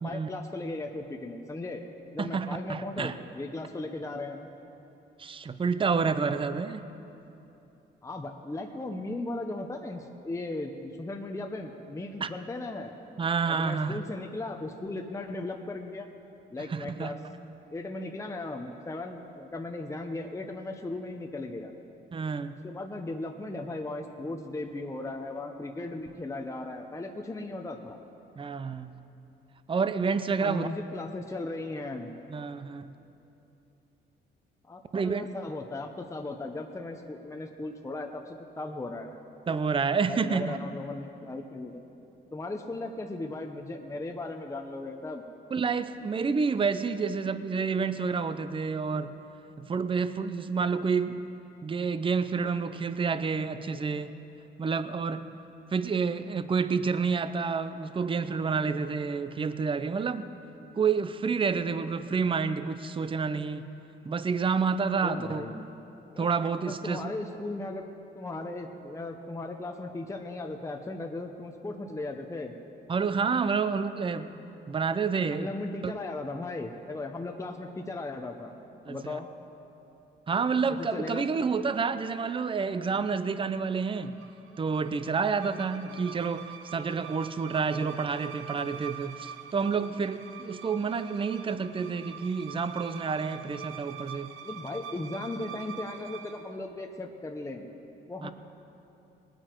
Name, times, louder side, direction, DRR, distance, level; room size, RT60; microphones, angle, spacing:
voice 1, 0.0-1.8 2.1-4.5 8.0-12.9 13.5-16.1 16.5-17.2 17.7-21.7 22.6-28.0 30.4-32.1 34.7-39.2 40.1-41.8 42.3-45.2 65.0-65.7 66.1-66.3 66.6-67.9 68.1-72.5 75.3-78.6 78.9-79.3 80.7-81.3 93.6-93.7 94.4-97.7 98.1-98.3, left 2 dB, 15° left, 3 dB, 0.8 m, -37 dB
voice 2, 2.2-3.2 5.2-6.8 12.2-12.3 13.2-14.0 16.6-17.1 22.1-22.6 28.4-28.9 29.7-30.7 32.3-32.9 34.9-35.3 39.5-40.6 45.5-49.1 49.6-51.2 51.6-54.1 54.6-55.2 55.7-60.3 60.8-63.6 64.0-65.4 66.2-67.1 72.9-74.3 74.7-75.5 75.8-75.9 78.9-79.2 80.3-84.1 84.6-94.3 98.2-98.3, right 5 dB, 25° right, 12 dB, 0.6 m, -29 dB
sound 1, 83.8-96.5, right 8 dB, 85° right, 0.7 m, -45 dB
19.5 x 9.0 x 4.6 m, 2.9 s
cardioid pair, 90°, 20 cm